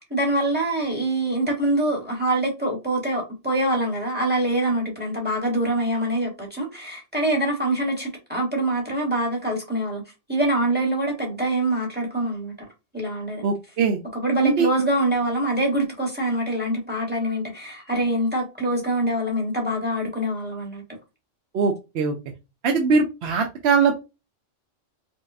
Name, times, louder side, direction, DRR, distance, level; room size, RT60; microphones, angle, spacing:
voice 1, 0.0-10.0 10.3-12.5 12.9-13.4 14.1-20.8, right 1 dB, 10° right, 1.1 m, -24 dB
voice 2, 13.4-14.0 14.4-14.7 21.5-22.1 22.6-24.0, right 5 dB, 65° right, 0.8 m, -21 dB
4.6 x 2.1 x 2.5 m
omnidirectional pair, 1.3 m